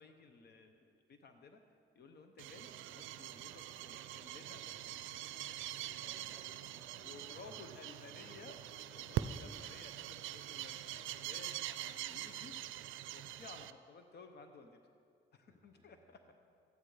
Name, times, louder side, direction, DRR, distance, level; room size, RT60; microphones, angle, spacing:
voice 1, 0.0-1.6 1.9-5.3 7.0-8.6 8.9-12.5 13.1-14.8 15.3-16.3, left 4 dB, 55° left, 7 dB, 0.9 m, -56 dB
sound 1, 2.4-13.7, right 13 dB, 80° right, 0.4 m, -44 dB
voice 2, 5.6-7.6 7.9-9.0 9.3-9.7 15.5-16.3, right 1 dB, 20° right, -3 dB, 3.5 m, -64 dB
13.0 x 10.0 x 4.9 m, 2.3 s
cardioid pair, 90°, 20 cm